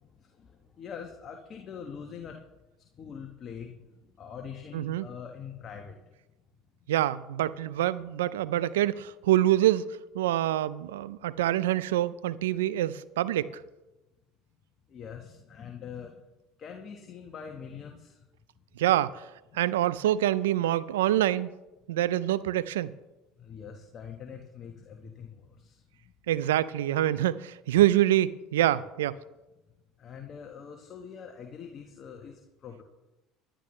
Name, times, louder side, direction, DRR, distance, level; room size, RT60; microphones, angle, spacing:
voice 1, 0.0-2.4 2.8-6.1 14.9-16.2 16.6-18.2 19.5-19.8 23.4-26.1 30.0-32.8, left 7 dB, 45° left, 1.4 m, -44 dB
voice 2, 4.7-5.1 6.9-9.8 10.1-13.5 18.8-19.2 19.5-21.5 21.9-22.9 26.3-29.2, right 13 dB, 85° right, 0.5 m, -26 dB
19.0 x 11.0 x 3.3 m
hypercardioid pair, 80°, 0 cm